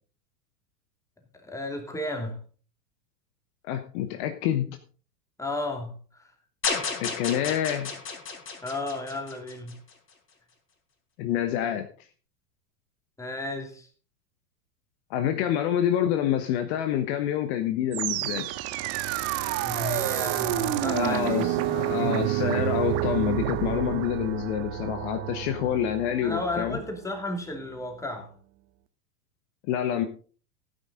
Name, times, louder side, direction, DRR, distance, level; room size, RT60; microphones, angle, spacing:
voice 1, 1.4-2.4 5.4-6.3 8.6-9.8 13.2-13.9 19.6-22.3 26.2-28.3, left 2 dB, 5° left, 2.7 m, -34 dB
voice 2, 3.6-4.7 7.0-7.9 11.2-11.9 15.1-18.5 20.9-26.8 29.7-30.1, left 10 dB, 45° left, 1.3 m, -27 dB
sound 1, 6.6-9.9, left 5 dB, 25° left, 4.4 m, -32 dB
sound 2, 17.9-27.1, right 15 dB, 30° right, 0.9 m, -29 dB
16.0 x 9.1 x 3.8 m
figure-of-eight pair, 95°, 47 cm